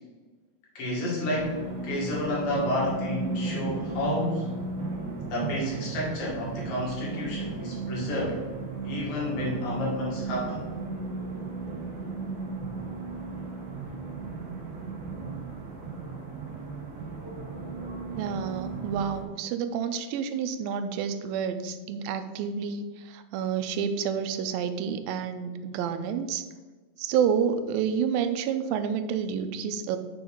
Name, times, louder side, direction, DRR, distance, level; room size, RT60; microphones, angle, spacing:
voice 1, 0.8-1.6 1.8-4.5 5.3-8.4 8.8-10.7, left 1 dB, 70° left, -5 dB, 3.8 m, -30 dB
sound 1, 1.3-19.2, right 3 dB, 60° right, 1.8 m, -35 dB
voice 2, 18.2-26.5 27.0-30.0, right 7 dB, 90° right, 9 dB, 2.3 m, -29 dB
7.2 x 3.9 x 6.0 m, 1.3 s
omnidirectional pair, 4.0 m